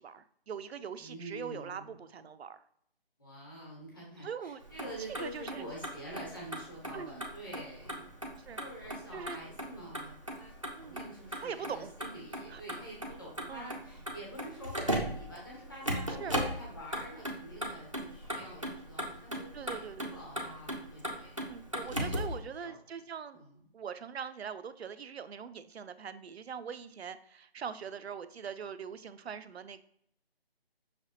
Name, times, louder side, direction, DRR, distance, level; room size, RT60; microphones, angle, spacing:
voice 1, 0.0-2.6 4.2-4.6 5.2-5.7 6.9-7.2 8.4-8.6 9.1-9.4 10.7-11.1 11.4-11.9 12.5-12.6 13.5-13.7 16.2-16.4 19.5-20.3 21.4-23.4 23.7-29.8, right 7 dB, 85° right, 12 dB, 0.5 m, -42 dB
voice 2, 1.0-1.8 3.2-8.1 8.5-10.5 10.8-21.4 21.8-22.8 23.3-23.6, equal, 20° left, -5 dB, 1.1 m, -47 dB
Motor vehicle (road), 4.6-22.4, equal, 35° right, 0.4 m, -38 dB
5.7 x 3.3 x 2.7 m, 0.70 s
hypercardioid pair, 175°, 31 cm